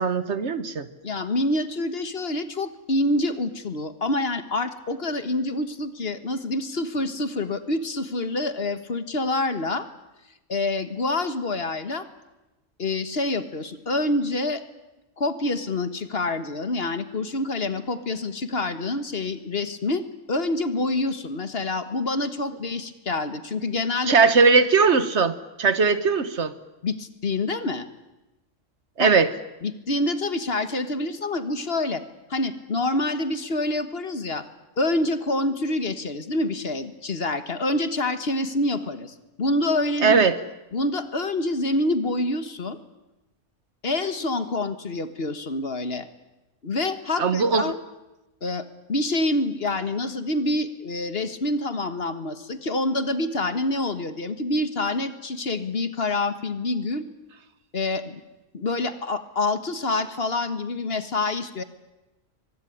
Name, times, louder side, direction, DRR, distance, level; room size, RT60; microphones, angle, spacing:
voice 1, 0.0-0.9 24.1-26.5 29.0-29.3 40.0-40.4 47.2-47.7, right 5 dB, 60° right, 13 dB, 1.5 m, -19 dB
voice 2, 1.0-9.8 10.5-12.0 12.8-14.6 15.2-24.1 26.8-27.9 29.0-29.1 29.6-32.0 32.3-34.4 34.8-40.2 40.7-42.8 43.8-46.1 46.6-47.8 48.4-57.0 57.7-58.2 58.5-61.6, left 2 dB, 50° left, 11 dB, 1.7 m, -27 dB
24.0 x 21.0 x 10.0 m, 1.0 s
omnidirectional pair, 1.3 m